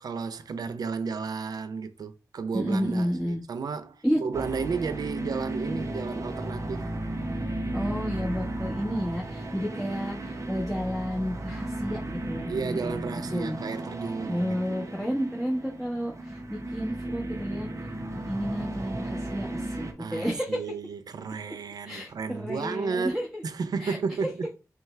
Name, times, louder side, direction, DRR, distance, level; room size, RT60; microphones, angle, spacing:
voice 1, 0.0-6.8 12.5-15.1 20.0-24.5, right 5 dB, 85° right, 0.4 m, -33 dB
voice 2, 2.5-3.4 4.0-4.2 7.7-13.6 14.3-20.6 21.8-23.4 23.8-24.0, equal, ahead, 1.3 m, -31 dB
sound 1, 4.3-19.9, right 1 dB, 50° right, 0.8 m, -34 dB
5.5 x 2.3 x 3.1 m
wide cardioid pair, 65°, 6 cm